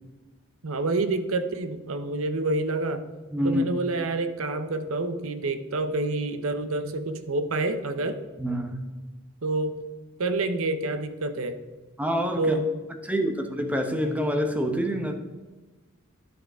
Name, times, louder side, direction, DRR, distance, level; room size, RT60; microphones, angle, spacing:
voice 1, 0.6-3.0 3.4-8.2 9.4-9.8 10.2-11.6 12.4-12.7, right 2 dB, 70° right, 10 dB, 0.8 m, -28 dB
voice 2, 3.3-3.6 8.4-8.8 12.0-12.6 13.1-15.1, equal, 5° right, 5 dB, 0.8 m, -26 dB
11.0 x 6.4 x 3.6 m, 1.2 s
head